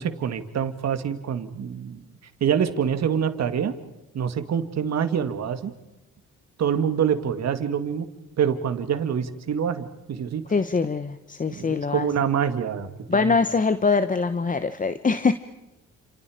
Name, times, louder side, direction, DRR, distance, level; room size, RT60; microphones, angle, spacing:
voice 1, 0.0-2.0 2.4-3.7 4.1-5.7 6.6-8.1 8.4-10.4 11.5-13.4, right 8 dB, 60° right, 9 dB, 2.2 m, -26 dB
voice 2, 10.5-12.1 13.1-15.3, left 4 dB, 25° left, 11 dB, 1.1 m, -23 dB
30.0 x 27.5 x 5.1 m, 0.98 s
cardioid pair, 90°, 30 cm